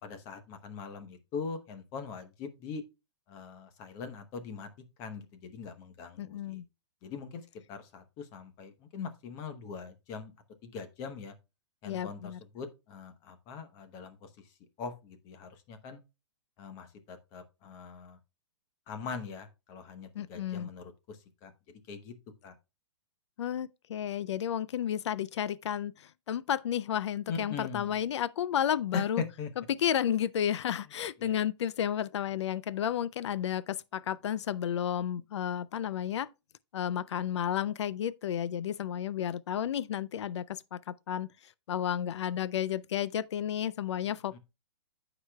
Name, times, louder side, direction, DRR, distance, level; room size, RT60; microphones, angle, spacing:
voice 1, 0.0-2.8 3.3-4.7 5.0-6.6 7.0-7.4 7.7-10.3 10.6-11.3 11.8-14.5 14.8-16.0 16.6-18.2 18.9-21.5 21.9-22.1 22.4-22.5 27.3-27.9 28.9-29.5 31.2-31.4 44.1-44.4, left 5 dB, 25° left, 0.9 m, -41 dB
voice 2, 6.2-6.6 11.8-12.4 20.1-20.7 23.4-29.2 29.6-36.3 36.7-44.4, left 10 dB, 80° left, 0.4 m, -32 dB
14.5 x 5.0 x 2.3 m
hypercardioid pair, 165°, 15 cm